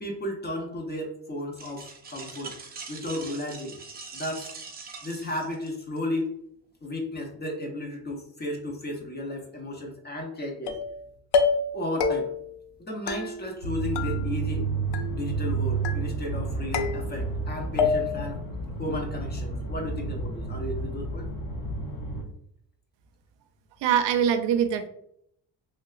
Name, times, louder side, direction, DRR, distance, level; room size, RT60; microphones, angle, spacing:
voice 1, 0.0-2.6 2.9-3.8 4.1-4.5 5.0-6.3 6.8-10.8 11.7-12.3 12.8-14.7 15.1-18.4 18.8-21.3, left 1 dB, 25° left, 1 dB, 0.6 m, -34 dB
sound 1, 1.6-6.0, right 4 dB, 25° right, 0.5 m, -42 dB
sound 2, 10.7-11.0 11.3-11.7 12.0-12.5 13.1-13.7 14.0-14.6 14.9-15.5 15.8-16.4 16.7-17.4 17.8-18.3, left 5 dB, 70° left, 0.5 m, -28 dB
sound 3, 13.6-22.2, right 3 dB, 55° left, 0.9 m, -31 dB
voice 2, 23.8-24.9, right 8 dB, 85° right, 8 dB, 0.5 m, -23 dB
3.2 x 2.9 x 2.3 m, 0.71 s
cardioid pair, 145°, 42 cm